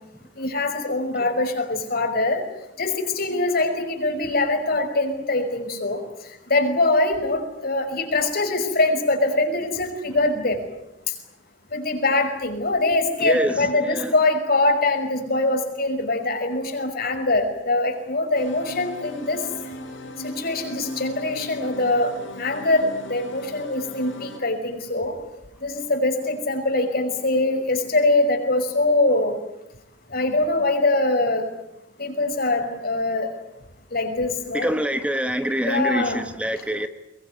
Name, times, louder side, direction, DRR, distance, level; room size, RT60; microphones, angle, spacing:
voice 1, 0.4-2.4 2.8-6.0 6.5-10.6 11.7-19.4 20.2-25.2 25.6-29.4 30.1-31.4 32.0-33.3 33.9-34.7 35.7-36.2, left 2 dB, 55° left, 5 dB, 5.6 m, -23 dB
voice 2, 13.2-14.1 34.5-36.9, equal, 5° right, 8 dB, 1.1 m, -25 dB
sound 1, 18.3-24.4, left 1 dB, 85° left, 5.1 m, -38 dB
23.5 x 22.0 x 9.8 m, 0.85 s
head